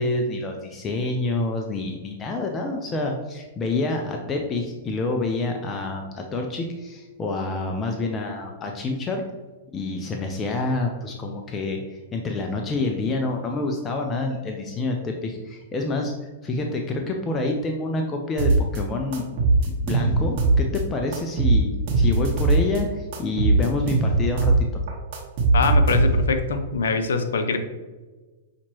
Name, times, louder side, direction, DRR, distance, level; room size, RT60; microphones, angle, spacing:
voice 1, 0.0-9.2 9.7-16.1 16.4-19.2 19.6-24.7, left 2 dB, 25° left, 2 dB, 0.5 m, -27 dB
sound 1, 18.4-18.8 19.1-20.8 21.1-22.8 23.1-24.6 24.9-26.4, right 3 dB, 50° right, 1.3 m, -20 dB
voice 2, 25.5-27.6, left 4 dB, 80° left, 7 dB, 0.5 m, -24 dB
5.8 x 2.9 x 2.9 m, 1.2 s
hypercardioid pair, 120°, 0 cm